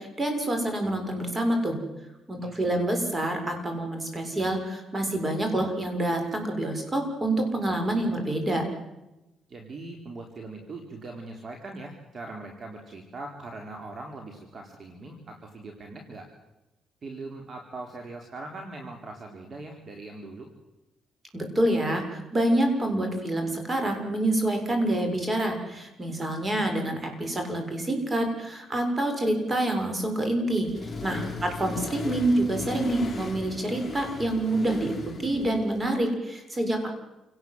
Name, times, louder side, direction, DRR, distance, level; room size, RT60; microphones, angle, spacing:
voice 1, 0.0-1.8 2.3-8.6 21.3-30.7 31.0-36.9, right 1 dB, 25° right, 4 dB, 7.0 m, -27 dB
voice 2, 2.4-2.8 9.5-16.3 17.0-20.5 31.3-31.5, right 2 dB, 45° right, 3 dB, 4.0 m, -41 dB
Accelerating revving vroom, 30.6-35.9, left 3 dB, 20° left, 4.6 m, -37 dB
29.0 x 18.5 x 8.0 m, 0.98 s
cardioid pair, 90°, 0 cm